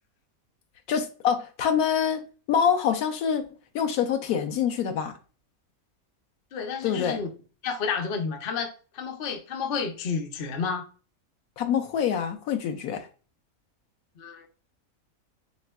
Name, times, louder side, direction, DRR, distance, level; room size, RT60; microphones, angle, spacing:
voice 1, 0.9-3.4 3.7-5.1 6.8-7.2 11.6-13.1, left 8 dB, 80° left, 1.1 m, -25 dB
voice 2, 6.5-7.3 7.6-10.9 14.2-14.5, left 5 dB, 50° left, 0.7 m, -31 dB
4.3 x 3.4 x 2.2 m
omnidirectional pair, 1.6 m